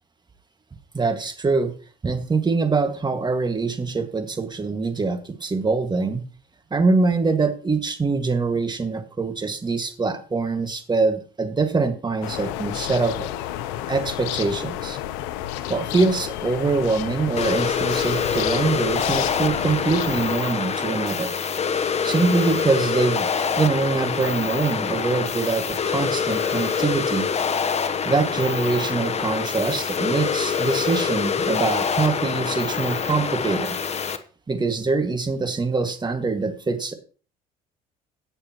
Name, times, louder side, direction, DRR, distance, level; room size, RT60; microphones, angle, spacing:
voice 1, 0.9-1.7 2.0-6.2 6.7-13.3 13.9-15.0 15.7-21.3 22.0-23.3 23.6-27.3 28.1-33.8 34.5-36.9, right 4 dB, 25° right, 7 dB, 1.9 m, -24 dB
sound 1, 12.2-20.4, left 13 dB, 85° left, 0.9 m, -31 dB
sound 2, 17.4-34.2, left 6 dB, 35° left, 1.0 m, -25 dB
17.0 x 6.7 x 3.0 m, 0.38 s
supercardioid pair, 85°, 19 cm